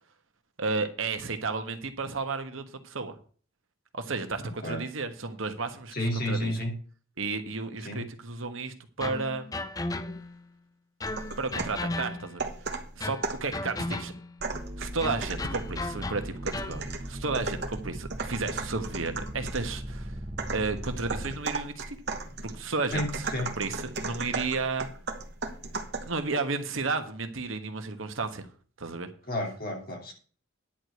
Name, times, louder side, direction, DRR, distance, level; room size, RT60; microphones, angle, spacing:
voice 1, 0.6-3.1 3.9-5.9 6.3-6.5 7.2-9.5 11.4-12.4 12.9-14.1 14.8-20.2 20.5-22.0 22.4-24.9 26.0-28.5 28.8-29.1, right 3 dB, 75° right, 7 dB, 1.3 m, -32 dB
voice 2, 4.4-4.8 5.9-6.8 7.8-8.1 22.9-23.5 29.3-30.1, left 1 dB, 45° left, 1 dB, 2.8 m, -31 dB
sound 1, 9.0-10.4 11.0-12.5 13.0-14.4 15.0-16.9, left 2 dB, 15° left, 0.4 m, -35 dB
sound 2, 11.1-11.9 12.4-13.5 14.4-15.8 16.5-19.7 20.4-26.2, right 3 dB, 50° right, 1.3 m, -36 dB
sound 3, 14.5-21.4, right 1 dB, 25° right, 0.9 m, -39 dB
10.0 x 4.7 x 8.0 m, 0.42 s
head